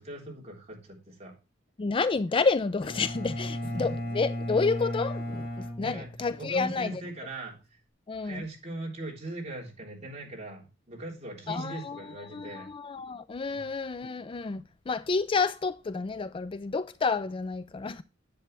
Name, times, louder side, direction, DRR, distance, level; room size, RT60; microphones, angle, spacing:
voice 1, 0.0-1.3 3.7-4.0 5.8-6.1 6.4-7.5 8.2-12.7 13.5-13.7, right 2 dB, 35° right, 3.6 m, -40 dB
voice 2, 1.8-7.0 8.1-8.4 11.5-12.0 12.3-18.0, left 4 dB, 25° left, 0.4 m, -30 dB
Bowed string instrument, 2.8-6.7, equal, 55° left, 2.3 m, -35 dB
10.5 x 8.0 x 3.3 m
head